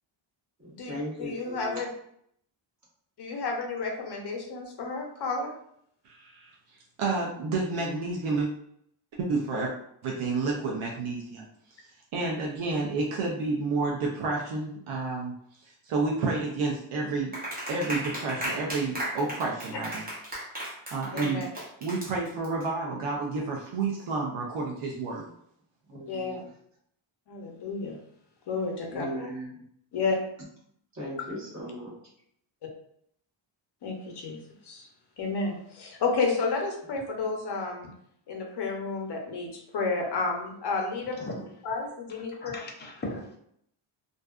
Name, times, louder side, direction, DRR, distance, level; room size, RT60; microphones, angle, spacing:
voice 1, 0.6-1.8 25.8-26.5 28.9-29.6 30.9-32.0, equal, 35° right, -6 dB, 1.1 m, -37 dB
voice 2, 1.2-1.9 3.2-5.5 19.7-19.8 21.1-21.5 26.1-26.4 27.3-28.0 28.5-29.0 29.9-30.2 33.8-34.4 34.7-34.9 35.2-37.9 38.3-41.1 41.6-42.5, left 4 dB, 55° left, 1 dB, 0.7 m, -31 dB
voice 3, 6.0-6.5 7.0-8.5 9.2-9.7 10.0-11.5 12.1-15.3 15.8-17.3 17.7-20.0 20.9-21.4 21.8-25.2, right 3 dB, 75° right, -2 dB, 0.6 m, -30 dB
Clapping, 17.3-22.6, right 1 dB, 20° right, 0.6 m, -35 dB
voice 4, 41.1-41.5 42.4-43.4, left 1 dB, 25° left, 0 dB, 0.4 m, -37 dB
2.5 x 2.3 x 2.3 m, 0.70 s
wide cardioid pair, 160°, 49 cm